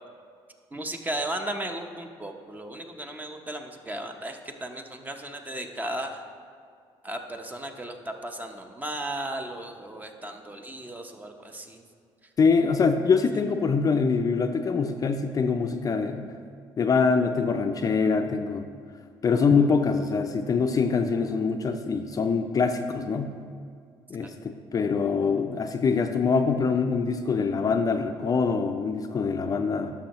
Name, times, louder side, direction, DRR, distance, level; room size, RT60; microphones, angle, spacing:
voice 1, 0.7-6.2 7.0-11.8 24.2-24.3, right 1 dB, 15° right, 5 dB, 0.7 m, -35 dB
voice 2, 12.4-16.3 16.8-18.6 19.2-23.3 24.1-29.9, left 5 dB, 35° left, 6 dB, 0.4 m, -24 dB
11.5 x 6.4 x 3.0 m, 2.2 s
cardioid pair, 100°, 10 cm